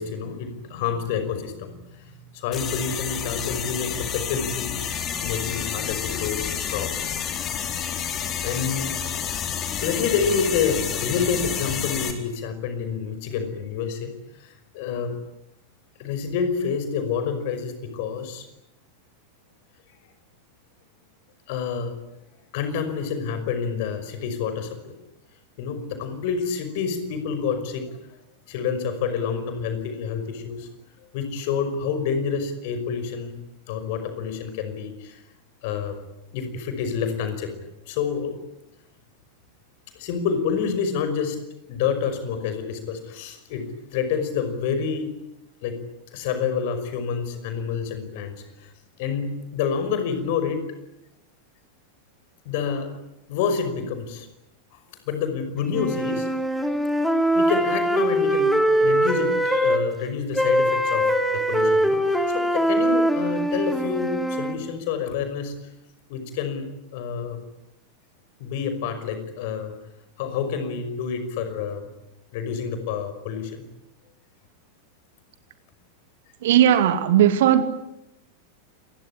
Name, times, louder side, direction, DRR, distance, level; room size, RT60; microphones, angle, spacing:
voice 1, 0.0-4.8 5.2-7.2 8.4-9.3 9.8-15.1 16.0-18.5 21.5-22.0 22.5-24.9 25.6-27.9 28.5-30.7 31.1-33.3 33.7-35.2 35.6-36.0 36.3-37.5 37.9-38.4 39.9-41.4 41.7-43.7 43.9-45.1 45.6-45.8 46.1-48.7 49.0-50.6 52.5-52.9 53.3-54.3 54.7-54.8 55.1-56.3 57.3-65.5 66.1-66.7 66.9-67.4 68.4-69.7 70.2-71.9 72.3-73.6, left 6 dB, 50° left, 10 dB, 5.5 m, -28 dB
sound 1, 2.5-12.1, left 8 dB, 30° left, 4.3 m, -29 dB
sound 2, 55.7-59.8 60.4-64.6, equal, ahead, 3.3 m, -22 dB
voice 2, 76.4-77.6, right 10 dB, 55° right, 10 dB, 2.5 m, -17 dB
27.5 x 21.5 x 10.0 m, 0.85 s
figure-of-eight pair, 90°, 0 cm